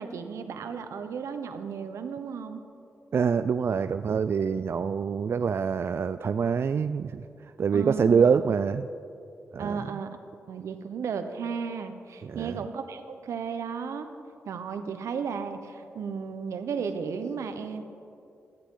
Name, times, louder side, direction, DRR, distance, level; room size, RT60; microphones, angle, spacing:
voice 1, 0.0-2.6 7.7-8.3 9.6-10.1 10.5-14.1 14.5-17.8, right 6 dB, 85° right, 8 dB, 1.0 m, -34 dB
voice 2, 3.1-7.2 7.6-8.9 9.5-9.8 12.3-12.6, right 6 dB, 55° right, 11 dB, 0.3 m, -25 dB
17.0 x 13.5 x 3.8 m, 2.6 s
cardioid pair, 70°, 5 cm